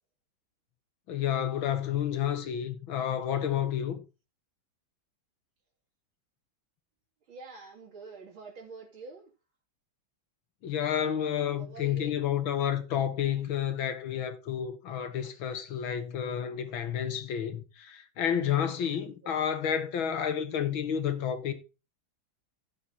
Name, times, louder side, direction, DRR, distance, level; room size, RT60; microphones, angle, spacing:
voice 1, 1.1-4.0 10.6-21.5, left 9 dB, 85° left, 2.2 m, -30 dB
voice 2, 7.3-9.3 11.6-12.2 15.2-15.3 19.0-19.5, right 4 dB, 85° right, 3.6 m, -47 dB
16.0 x 7.2 x 2.9 m
omnidirectional pair, 2.2 m